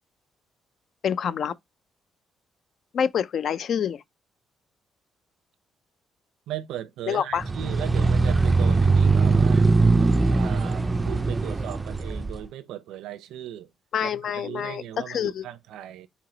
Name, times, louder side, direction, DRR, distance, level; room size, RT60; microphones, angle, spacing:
voice 1, 1.0-1.6 2.9-4.0 7.1-7.4 13.9-15.4, left 8 dB, 65° left, 0.4 m, -27 dB
voice 2, 6.5-9.7 10.3-13.7 14.0-16.1, right 11 dB, 85° right, 0.6 m, -37 dB
sound 1, 7.4-12.4, right 3 dB, 20° right, 0.3 m, -21 dB
4.5 x 2.9 x 3.8 m
cardioid pair, 90°, 0 cm